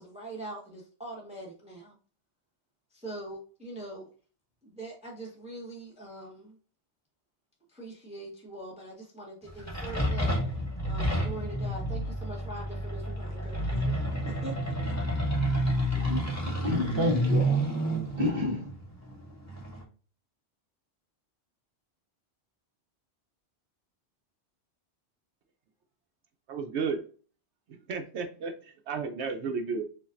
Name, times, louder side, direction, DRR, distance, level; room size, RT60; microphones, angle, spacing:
voice 1, 0.0-1.9 2.9-4.1 4.6-6.6 7.7-10.4 10.9-14.5 14.8-14.9 15.5-15.8, right 2 dB, 5° right, 1.0 m, -43 dB
sound 1, 9.5-19.8, right 1 dB, 15° left, 1.3 m, -30 dB
voice 2, 15.9-17.7 18.1-18.8, left 1 dB, 35° right, 0.9 m, -30 dB
voice 3, 26.5-27.0 27.7-28.5 28.9-29.9, right 5 dB, 85° right, 0.9 m, -32 dB
7.0 x 2.5 x 2.4 m
omnidirectional pair, 1.1 m